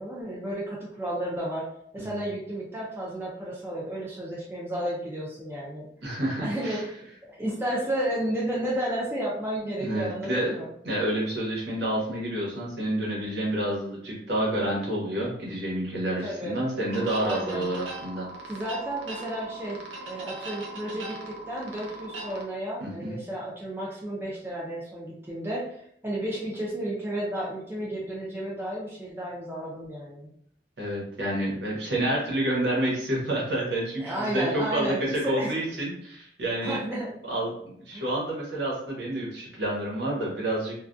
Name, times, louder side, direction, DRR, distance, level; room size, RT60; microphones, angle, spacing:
voice 1, 0.0-1.7 1.9-5.9 6.4-6.9 7.2-10.7 16.2-16.6 17.2-17.7 18.4-19.8 20.1-30.3 34.0-35.7 36.6-37.1 37.9-38.0, right 1 dB, 10° right, -5 dB, 0.4 m, -32 dB
voice 2, 6.0-6.8 9.8-10.5 10.8-18.2 22.8-23.1 30.8-36.8 37.2-40.7, right 1 dB, 70° right, -3 dB, 0.9 m, -29 dB
sound 1, 16.9-22.4, right 2 dB, 90° right, 0.6 m, -40 dB
2.3 x 2.2 x 2.5 m, 0.67 s
head